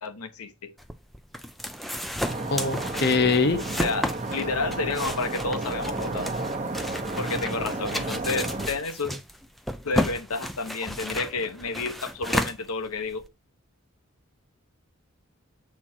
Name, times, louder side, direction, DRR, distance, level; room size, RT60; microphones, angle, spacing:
voice 1, 0.0-0.7 3.8-6.3 7.2-9.1 9.8-13.2, left 3 dB, 90° left, 1.0 m, -30 dB
sound 1, 0.8-13.3, equal, ahead, 0.4 m, -33 dB
sound 2, 2.2-8.7, right 2 dB, 30° right, 1.0 m, -32 dB
voice 2, 2.5-3.6, left 4 dB, 45° left, 0.7 m, -22 dB
7.3 x 4.4 x 4.3 m
head